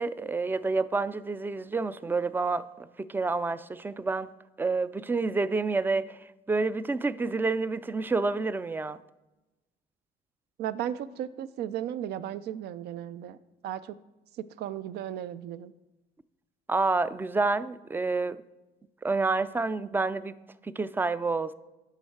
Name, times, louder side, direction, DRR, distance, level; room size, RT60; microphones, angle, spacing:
voice 1, 0.0-4.3 4.6-9.0 16.7-18.4 19.0-20.3 20.6-21.5, right 3 dB, 10° right, 0.3 m, -28 dB
voice 2, 10.6-13.4 13.6-13.9 14.4-15.7, right 10 dB, 75° right, 0.5 m, -35 dB
10.5 x 5.7 x 4.6 m
cardioid pair, 110°, 17 cm